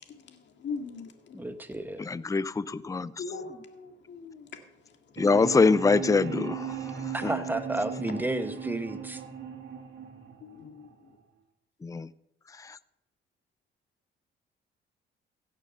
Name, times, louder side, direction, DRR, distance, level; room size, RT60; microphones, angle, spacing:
voice 1, 0.6-1.4 3.2-4.4 10.4-10.7, left 4 dB, 65° left, 5 dB, 2.1 m, -39 dB
voice 2, 1.3-2.0 7.1-9.2, right 1 dB, 10° right, 8 dB, 1.3 m, -32 dB
voice 3, 2.0-3.1 5.2-6.8 7.2-7.3 11.8-12.1 12.7-12.8, left 4 dB, 15° left, 17 dB, 0.5 m, -24 dB
sound 1, 5.2-11.2, right 8 dB, 65° right, 2.4 m, -37 dB
16.5 x 6.8 x 6.7 m, 0.80 s
cardioid pair, 90°, 20 cm